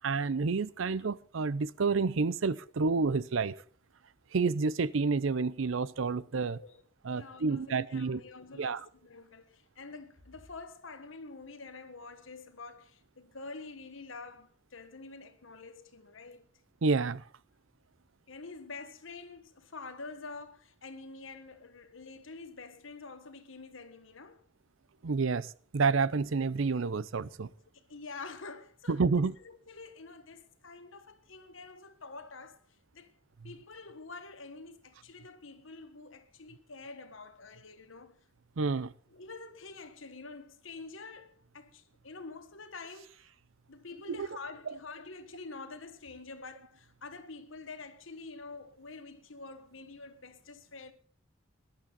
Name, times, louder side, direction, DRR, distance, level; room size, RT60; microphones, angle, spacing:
voice 1, 0.0-3.6 4.3-6.6 7.0-8.2 8.6-8.8 16.8-17.2 25.0-27.5 28.9-29.3 38.6-38.9 44.1-44.3, right 4 dB, 75° right, 0.6 m, -29 dB
voice 2, 7.1-16.4 18.3-24.4 27.4-32.6 32.9-33.1 33.4-38.2 38.8-43.2 43.7-50.9, left 3 dB, 75° left, 1.5 m, -47 dB
19.0 x 11.5 x 4.1 m
head